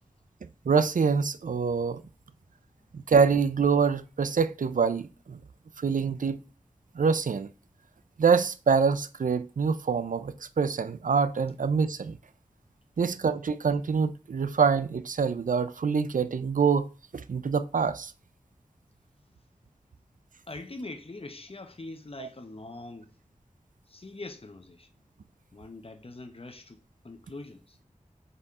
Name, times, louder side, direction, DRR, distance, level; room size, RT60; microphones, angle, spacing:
voice 1, 0.7-2.0 2.9-5.4 5.8-6.4 6.9-7.5 8.2-12.2 13.0-18.1 22.2-22.3, right 5 dB, 80° right, 0.5 m, -25 dB
voice 2, 20.5-23.1 23.9-24.9 25.5-27.8, left 2 dB, 45° left, 0.9 m, -43 dB
5.5 x 4.2 x 4.8 m
wide cardioid pair, 50°, 13 cm